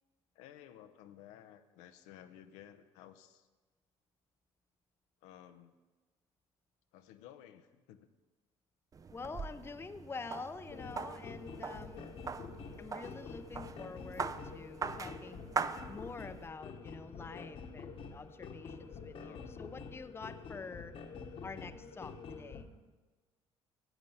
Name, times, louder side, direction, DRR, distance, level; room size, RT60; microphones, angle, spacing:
voice 1, 0.3-3.5 5.2-5.8 6.9-8.1 19.1-19.6, left 11 dB, 90° left, 9 dB, 0.7 m, -55 dB
sound 1, 8.9-16.5, right 5 dB, 30° right, 0.4 m, -42 dB
voice 2, 9.1-12.1 12.8-15.5 15.9-21.0 21.4-22.7, left 4 dB, 20° left, 11 dB, 0.6 m, -47 dB
sound 2, 10.7-22.6, left 5 dB, 55° left, 1.2 m, -47 dB
10.5 x 8.0 x 5.5 m, 1.2 s
supercardioid pair, 90°, 12 cm